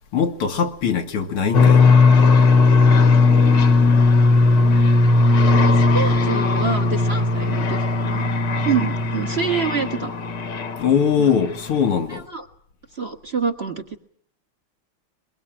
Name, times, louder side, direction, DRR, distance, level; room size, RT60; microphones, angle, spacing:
voice 1, 0.1-1.8 10.8-12.3, left 7 dB, 85° left, 2.5 m, -21 dB
sound 1, 1.5-11.1, left 3 dB, 55° left, 1.9 m, -16 dB
voice 2, 5.5-8.3 8.6-10.1 11.2-11.3 12.1-12.4 12.9-14.0, right 5 dB, 35° right, 1.4 m, -26 dB
22.5 x 21.5 x 8.9 m
omnidirectional pair, 2.4 m